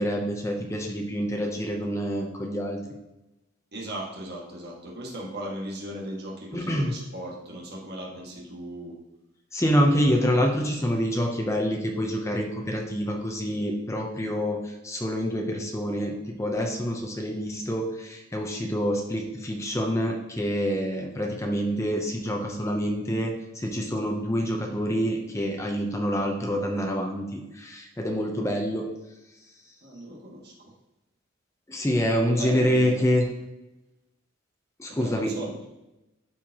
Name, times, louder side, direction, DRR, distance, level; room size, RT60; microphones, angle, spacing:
voice 1, 0.0-2.8 6.5-6.9 9.5-28.9 31.7-33.2 34.8-35.3, equal, 15° left, 1 dB, 0.7 m, -27 dB
voice 2, 3.7-9.0 29.8-30.7 32.3-33.1 34.9-35.6, right 1 dB, 50° right, -3 dB, 1.8 m, -37 dB
12.0 x 4.4 x 2.9 m, 0.97 s
head